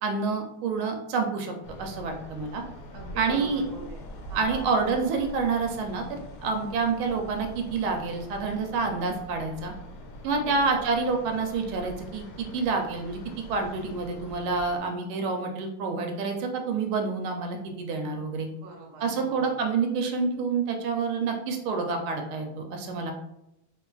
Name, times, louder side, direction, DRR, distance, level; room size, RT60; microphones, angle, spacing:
voice 1, 0.0-1.5 1.8-2.6 3.2-3.6 4.3-9.7 10.2-13.2 13.5-18.5 19.0-23.1, right 4 dB, 85° right, 3 dB, 1.4 m, -28 dB
sound 1, 1.6-14.8, equal, 70° left, 1.1 m, -44 dB
voice 2, 2.9-4.0 4.3-4.7 10.4-10.7 18.5-19.6, right 3 dB, 60° right, -1 dB, 0.8 m, -43 dB
3.2 x 3.2 x 2.3 m, 0.84 s
omnidirectional pair, 2.2 m